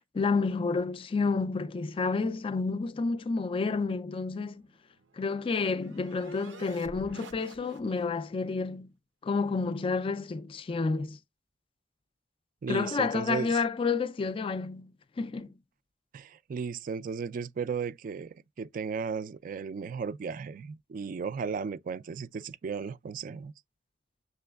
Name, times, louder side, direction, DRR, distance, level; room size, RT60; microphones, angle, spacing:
voice 1, 0.2-4.6 5.2-8.9 9.2-11.2 12.7-15.5, left 4 dB, 30° left, 0.3 m, -30 dB
sound 1, 4.6-8.2, right 3 dB, 80° right, 0.7 m, -50 dB
voice 2, 12.6-13.6 16.1-23.5, right 5 dB, 45° right, 0.3 m, -35 dB
6.7 x 3.0 x 2.2 m
head